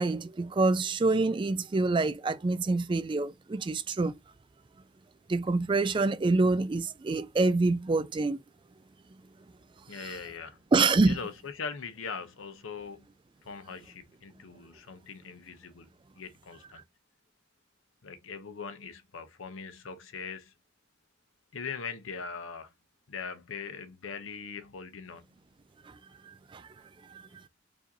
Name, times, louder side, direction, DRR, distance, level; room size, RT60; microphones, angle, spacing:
voice 1, 0.0-4.1 5.3-8.4 10.7-11.2 26.5-26.6, right 3 dB, 25° right, 0.3 m, -26 dB
voice 2, 9.9-10.6 11.1-13.1 13.4-15.9 16.2-16.8 18.0-20.5 21.5-22.7 23.1-25.3, left 5 dB, 85° left, 0.7 m, -41 dB
4.8 x 2.6 x 2.7 m
head